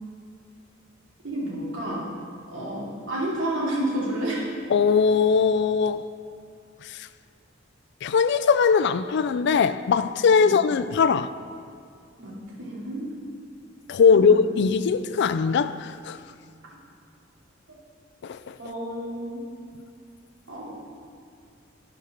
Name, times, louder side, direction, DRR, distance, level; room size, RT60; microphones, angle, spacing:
voice 1, 1.2-2.1 2.5-4.5 10.4-10.6 12.2-13.1 14.1-14.4 18.6-19.4 20.5-20.8, right 1 dB, 80° right, 2.6 m, -30 dB
voice 2, 4.7-6.1 6.8-7.1 8.0-11.3 13.9-16.2 18.2-18.6, left 5 dB, 60° left, 0.3 m, -20 dB
11.5 x 5.1 x 5.8 m
head